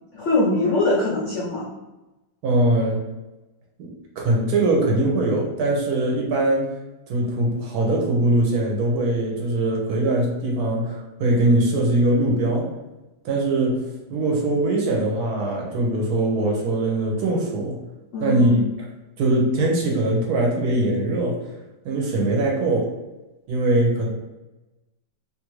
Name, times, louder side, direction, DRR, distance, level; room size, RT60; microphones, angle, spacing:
voice 1, 0.1-1.7 18.1-18.6, left 2 dB, 75° left, -5 dB, 0.6 m, -22 dB
voice 2, 2.4-3.0 3.8-3.9 4.2-6.7 7.1-12.7 13.2-17.8 18.2-18.5 19.2-21.5 21.8-22.9 23.5-24.1, right 2 dB, 70° right, -1 dB, 1.1 m, -21 dB
2.9 x 2.4 x 3.0 m, 1.1 s
omnidirectional pair, 1.9 m